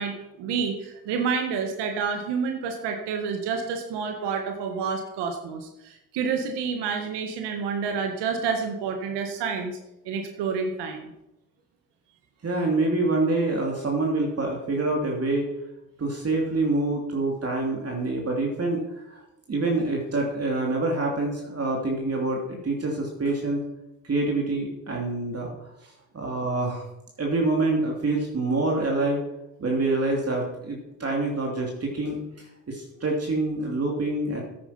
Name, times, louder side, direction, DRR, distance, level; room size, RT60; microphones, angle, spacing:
voice 1, 0.0-9.8 10.0-11.1, right 5 dB, 75° right, 4 dB, 1.7 m, -29 dB
voice 2, 12.4-15.4 16.0-19.2 19.5-23.6 24.0-25.5 26.1-26.8 27.2-29.2 29.6-34.4, right 2 dB, 35° right, -1 dB, 2.8 m, -26 dB
9.6 x 9.1 x 5.7 m, 0.90 s
supercardioid pair, 65°, 41 cm